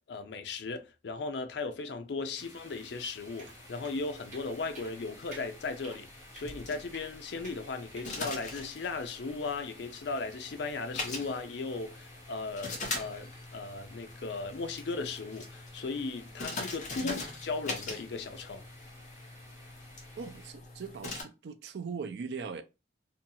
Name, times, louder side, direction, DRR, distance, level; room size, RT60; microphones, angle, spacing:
voice 1, 0.1-6.1 6.3-18.6, left 3 dB, 65° left, 0.4 m, -37 dB
sound 1, 2.4-20.5, left 1 dB, 15° right, 1.0 m, -55 dB
sound 2, 3.4-21.2, left 3 dB, 40° left, 0.7 m, -43 dB
sound 3, 3.4-3.5 3.8-4.0 4.3-4.5 4.7-4.9 5.3-5.5 5.8-6.0 6.3-6.5 6.9-7.1 7.4-7.6 8.0-8.1, right 3 dB, 40° right, 0.7 m, -49 dB
voice 2, 20.2-22.6, right 5 dB, 65° right, 0.4 m, -40 dB
2.7 x 2.3 x 2.7 m
head